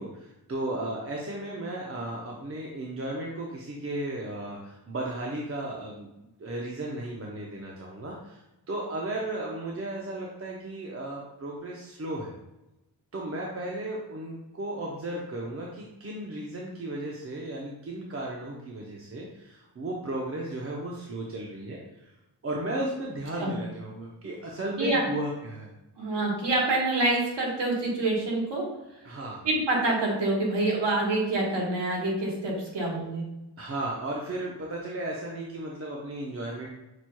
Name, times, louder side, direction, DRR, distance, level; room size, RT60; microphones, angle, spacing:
voice 1, 0.0-12.3 13.1-22.1 22.4-25.7 29.0-29.4 33.0-33.1 33.6-36.7, right 1 dB, 35° right, -2 dB, 0.7 m, -35 dB
voice 2, 26.0-28.6 29.4-33.2, right 2 dB, 75° right, -2 dB, 1.3 m, -26 dB
5.9 x 3.0 x 2.2 m, 0.95 s
cardioid pair, 75°, 42 cm